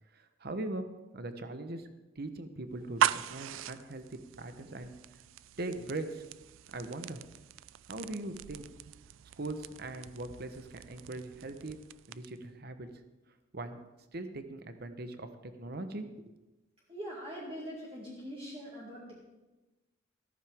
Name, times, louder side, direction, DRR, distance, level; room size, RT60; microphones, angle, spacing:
voice 1, 0.1-1.9 2.2-4.1 4.4-4.9 5.6-6.2 6.7-7.2 7.9-8.7 9.4-11.8 12.1-12.9 13.5-13.8 14.1-16.3, right 2 dB, 55° right, 8 dB, 1.0 m, -40 dB
sound 1, 2.8-12.5, right 9 dB, 90° right, 0.4 m, -39 dB
voice 2, 16.9-19.2, equal, 30° right, -5 dB, 2.3 m, -42 dB
14.0 x 13.5 x 3.6 m, 1.1 s
head